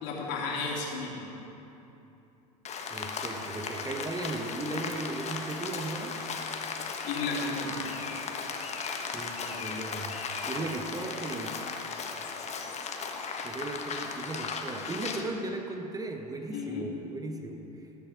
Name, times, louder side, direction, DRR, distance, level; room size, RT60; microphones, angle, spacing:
voice 1, 0.0-1.3 7.0-7.8 16.5-16.9, left 4 dB, 55° left, -2 dB, 2.9 m, -33 dB
Rain, 2.7-15.2, left 5 dB, 30° left, 1.3 m, -36 dB
voice 2, 2.9-6.2 9.1-10.2 10.5-11.6 13.4-18.0, right 2 dB, 15° right, 4 dB, 1.0 m, -37 dB
19.0 x 7.3 x 5.1 m, 2.9 s
figure-of-eight pair, 75°, 21 cm